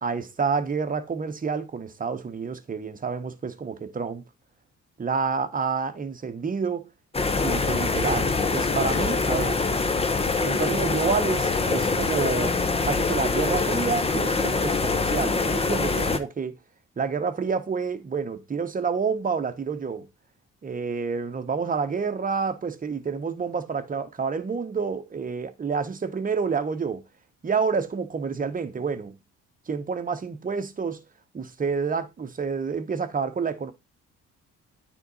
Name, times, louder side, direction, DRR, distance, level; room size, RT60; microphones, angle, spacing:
voice 1, 0.0-4.2 5.0-6.9 7.4-9.6 10.4-16.6 17.0-20.1 20.6-27.0 27.4-29.2 29.7-31.0 31.3-33.7, right 5 dB, 25° right, 1.0 m, -28 dB
sound 1, 7.1-16.2, left 3 dB, 20° left, 0.8 m, -24 dB
9.2 x 3.7 x 4.0 m
cardioid pair, 90°, 30 cm